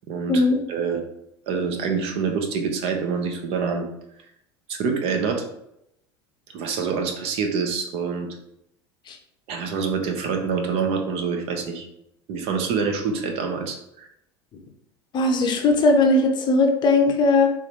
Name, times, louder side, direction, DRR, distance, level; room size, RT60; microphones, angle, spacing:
voice 1, 0.1-1.0 1.5-3.9 4.7-5.5 6.5-8.3 9.5-11.9 12.3-14.1, right 5 dB, 45° right, 4 dB, 0.8 m, -26 dB
voice 2, 15.1-17.5, left 2 dB, 35° left, 3 dB, 0.7 m, -18 dB
4.6 x 3.5 x 2.9 m, 0.79 s
figure-of-eight pair, 75°, 13 cm